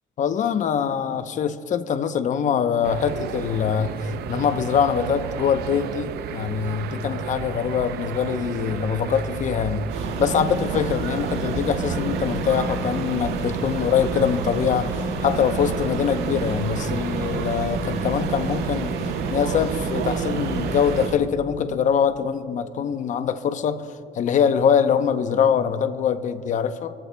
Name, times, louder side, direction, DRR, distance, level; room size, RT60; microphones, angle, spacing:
voice 1, 0.2-3.9 4.3-14.9 15.2-18.9 19.3-23.9 24.1-26.9, left 7 dB, 45° left, 10 dB, 0.7 m, -23 dB
sound 1, 2.8-21.1, right 9 dB, 70° right, 0.6 m, -33 dB
sound 2, 9.9-21.2, right 3 dB, 90° right, 1.8 m, -29 dB
24.5 x 14.5 x 2.2 m, 2.6 s
cardioid pair, 110°, 17 cm